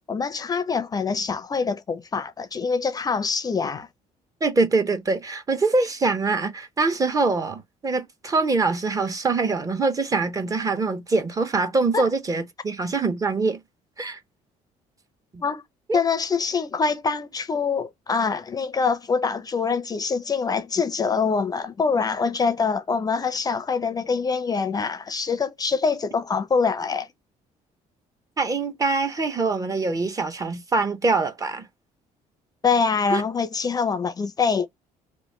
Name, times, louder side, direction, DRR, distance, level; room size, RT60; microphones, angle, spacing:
voice 1, 0.1-3.9 11.9-12.0 15.4-15.6 15.9-27.1 32.6-34.7, left 5 dB, 25° left, 0.4 m, -24 dB
voice 2, 4.4-13.6 14.0-14.2 15.3-15.4 15.9-16.0 28.4-31.7 33.1-33.2, right 3 dB, 25° right, 0.6 m, -24 dB
3.0 x 2.1 x 4.1 m
cardioid pair, 105°, 14 cm